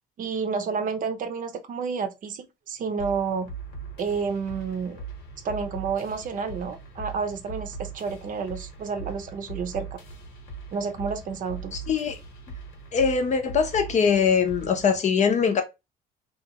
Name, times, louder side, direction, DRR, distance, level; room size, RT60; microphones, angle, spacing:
voice 1, 0.2-3.5 4.0-5.0 5.4-10.0 10.7-11.7, right 5 dB, 50° right, 0.6 m, -30 dB
sound 1, 3.0-15.0, right 4 dB, 90° left, 1.2 m, -40 dB
voice 2, 11.7-12.2 12.9-15.6, left 6 dB, 45° left, 0.6 m, -22 dB
2.5 x 2.4 x 2.8 m
cardioid pair, 110°, 17 cm